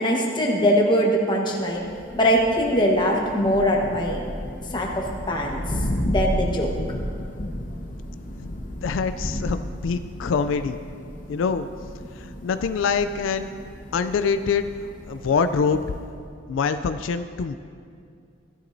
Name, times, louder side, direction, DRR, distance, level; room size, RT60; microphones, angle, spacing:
voice 1, 0.0-1.9 2.1-4.2 4.7-5.6 6.0-6.7, equal, 25° left, -1 dB, 1.2 m, -22 dB
Thunder, 1.7-16.2, equal, 45° left, 1.0 m, -33 dB
voice 2, 8.4-10.8 11.3-11.7 12.2-13.5 13.9-14.7 15.1-15.8 16.5-17.6, left 5 dB, 85° left, 10 dB, 0.4 m, -25 dB
15.5 x 11.5 x 2.7 m, 2.4 s
head